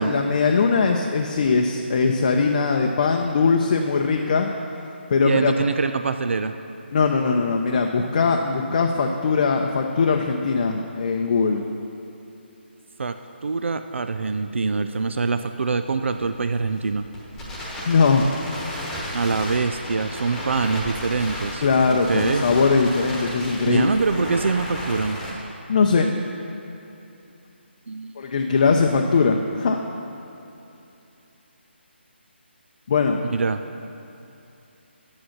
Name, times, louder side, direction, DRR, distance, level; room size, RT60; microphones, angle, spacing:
voice 1, 0.0-4.5 5.1-5.5 6.9-11.6 17.8-18.3 21.6-23.9 25.7-26.1 28.2-29.8 32.9-33.2, left 4 dB, 45° left, 2 dB, 0.6 m, -20 dB
voice 2, 5.2-6.5 13.0-13.2 13.4-17.1 19.1-21.6 21.9-22.4 23.6-25.2 27.9-28.1 33.2-33.6, right 4 dB, 80° right, 9 dB, 0.4 m, -24 dB
Crackle, 16.0-25.3, equal, 5° left, 1.2 m, -33 dB
8.4 x 7.8 x 5.8 m, 2.9 s
hypercardioid pair, 160°, 6 cm